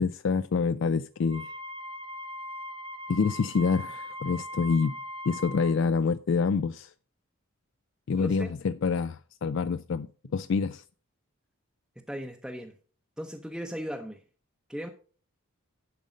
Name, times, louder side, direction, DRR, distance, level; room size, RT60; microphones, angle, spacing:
voice 1, 0.0-1.5 3.1-5.0 5.3-6.9 8.1-10.8, left 5 dB, 60° left, 0.4 m, -27 dB
Wind instrument woodwind instrument, 1.2-5.7, left 1 dB, 25° right, 1.1 m, -40 dB
voice 2, 8.2-8.5 12.0-12.7 13.2-14.2 14.7-14.9, equal, 5° right, 0.7 m, -37 dB
11.0 x 5.3 x 5.1 m
head